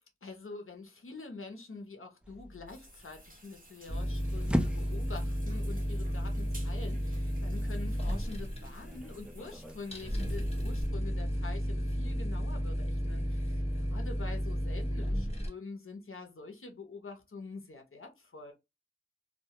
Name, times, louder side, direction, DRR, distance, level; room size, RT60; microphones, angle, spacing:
voice 1, 0.2-18.5, left 3 dB, 90° left, 0.6 m, -46 dB
sound 1, 2.2-9.8, equal, 5° right, 0.4 m, -40 dB
sound 2, 2.7-10.9, equal, 40° right, 0.8 m, -53 dB
sound 3, 3.9-15.5, equal, 30° left, 0.8 m, -33 dB
2.1 x 2.1 x 2.7 m
wide cardioid pair, 40°, 21 cm